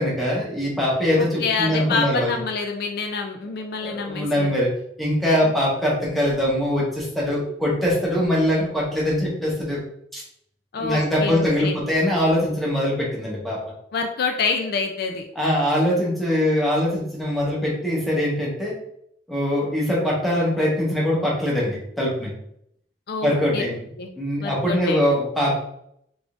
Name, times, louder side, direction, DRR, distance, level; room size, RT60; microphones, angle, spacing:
voice 1, 0.0-2.3 3.8-4.7 5.0-9.8 10.1-10.2 10.8-13.6 15.4-18.8 19.3-22.3 23.2-23.8 24.2-25.5, equal, ahead, -5 dB, 1.0 m, -22 dB
voice 2, 1.2-4.5 5.4-5.5 10.7-11.8 13.9-15.2 23.1-23.6 24.0-24.1 24.4-25.0, left 4 dB, 55° left, 3 dB, 0.4 m, -27 dB
3.6 x 3.4 x 2.5 m, 0.72 s
head